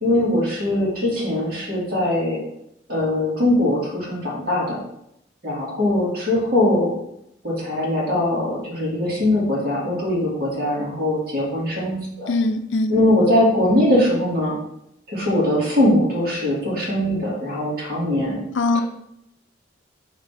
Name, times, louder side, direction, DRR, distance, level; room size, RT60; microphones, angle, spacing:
voice 1, 0.0-2.4 2.9-4.8 5.4-6.9 7.4-12.3 12.9-14.6 15.1-18.4 18.7-18.8, left 1 dB, 50° right, -5 dB, 2.4 m, -21 dB
voice 2, 12.3-12.9 18.6-18.8, left 2 dB, 80° left, 9 dB, 0.5 m, -21 dB
4.4 x 4.0 x 5.3 m, 0.79 s
head